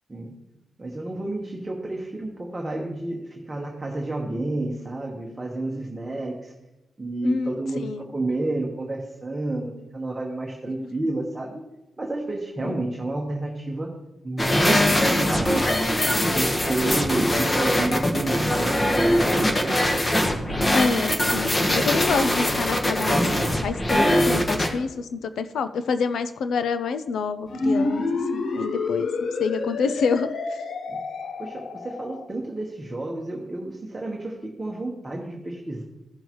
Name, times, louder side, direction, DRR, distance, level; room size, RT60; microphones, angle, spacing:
voice 1, 0.8-6.5 7.0-11.6 12.0-13.9 14.2-15.8 16.3-19.9 30.9-31.0 31.4-35.8, right 2 dB, 15° right, -1 dB, 1.1 m, -30 dB
sound 1, 14.4-24.7, left 1 dB, 20° left, 1.2 m, -22 dB
voice 2, 20.7-23.2 23.6-28.1 28.3-29.1 29.4-30.6, left 5 dB, 75° left, 11 dB, 0.5 m, -27 dB
sound 2, 27.5-32.3, left 3 dB, 60° left, 0.9 m, -28 dB
15.5 x 6.4 x 3.1 m, 0.97 s
wide cardioid pair, 165°, 0 cm